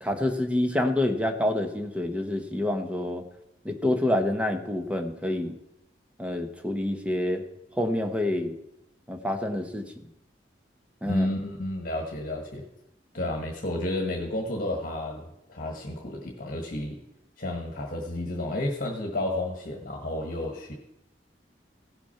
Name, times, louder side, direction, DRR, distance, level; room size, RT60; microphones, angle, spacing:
voice 1, 0.0-3.2 3.6-5.6 6.2-7.4 7.8-8.6 9.1-10.0 11.0-11.3, left 1 dB, 5° right, 5 dB, 1.0 m, -27 dB
voice 2, 11.0-12.6 13.1-15.2 15.5-17.0 17.4-20.7, left 1 dB, 50° left, 1 dB, 1.5 m, -31 dB
16.0 x 6.0 x 5.7 m, 0.84 s
head